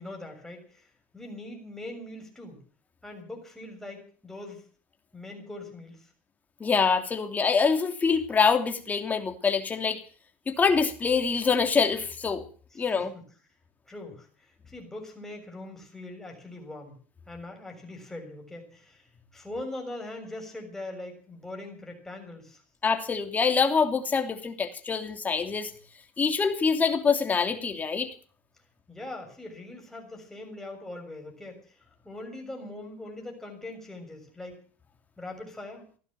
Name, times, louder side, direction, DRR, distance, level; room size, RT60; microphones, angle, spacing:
voice 1, 0.0-2.6 3.0-4.6 5.1-6.1 12.7-13.2 13.9-17.0 17.3-22.6 28.9-34.6 35.2-35.8, left 2 dB, 5° left, 2 dB, 6.9 m, -42 dB
voice 2, 6.6-10.0 10.5-12.4 12.8-13.1 22.8-25.7 26.2-28.1, left 5 dB, 25° left, 6 dB, 3.0 m, -25 dB
16.0 x 11.5 x 7.7 m, 0.43 s
supercardioid pair, 105°, 7 cm